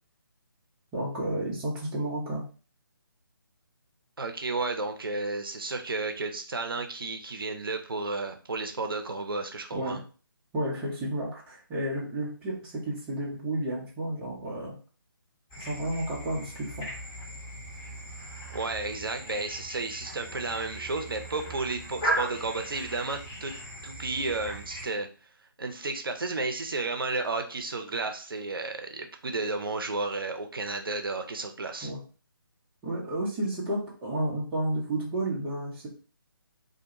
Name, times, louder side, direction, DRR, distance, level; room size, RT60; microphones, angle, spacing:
voice 1, 0.9-2.4 9.7-10.0 10.5-14.7 15.6-16.9 31.8-32.0 32.8-35.9, right 1 dB, 10° right, -5 dB, 0.6 m, -31 dB
voice 2, 4.2-10.0 18.5-23.5 23.8-25.1 25.6-31.9, right 3 dB, 70° right, 5 dB, 0.5 m, -32 dB
sound 1, 15.5-24.9, right 1 dB, 15° left, 1.0 m, -37 dB
2.5 x 2.2 x 2.8 m, 0.36 s
figure-of-eight pair, 145°, 12 cm